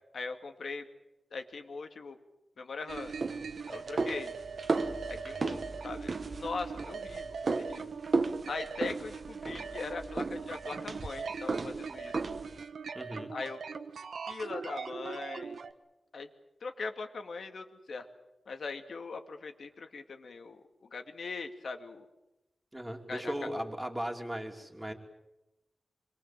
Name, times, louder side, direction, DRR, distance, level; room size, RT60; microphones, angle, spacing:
voice 1, 0.1-0.9 1.3-2.2 2.6-3.1 3.7-4.3 5.1-7.9 8.5-12.2 13.3-13.6 14.3-15.6 16.1-16.3 16.6-18.1 18.5-22.1 23.1-23.3, left 4 dB, 65° left, 6 dB, 2.2 m, -40 dB
sound 1, 2.9-12.6, right 3 dB, 45° right, 1.4 m, -35 dB
sound 2, 2.9-15.7, right 5 dB, 80° right, 1.2 m, -41 dB
voice 2, 12.9-13.3 22.7-24.9, equal, 10° right, 2 dB, 3.0 m, -37 dB
26.0 x 22.0 x 7.5 m, 0.95 s
wide cardioid pair, 170°, 0 cm